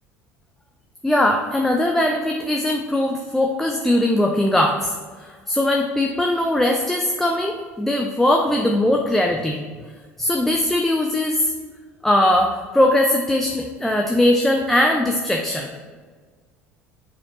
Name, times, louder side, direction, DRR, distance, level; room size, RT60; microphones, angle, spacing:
voice 1, 1.0-4.9 5.2-9.6 10.2-11.5 12.0-15.7, left 1 dB, 5° left, 2 dB, 0.6 m, -20 dB
9.7 x 4.3 x 2.9 m, 1.5 s
figure-of-eight pair, 65°, 7 cm